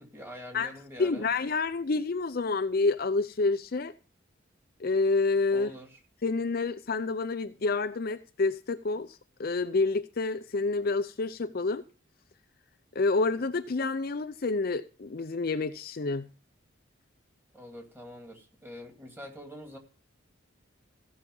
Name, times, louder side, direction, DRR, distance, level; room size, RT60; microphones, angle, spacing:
voice 1, 0.0-1.3 5.5-6.0 17.5-19.8, equal, 10° right, 2.3 m, -45 dB
voice 2, 1.0-3.9 4.8-5.7 6.2-11.8 12.9-16.3, left 3 dB, 50° left, 0.5 m, -28 dB
15.5 x 6.0 x 5.3 m
head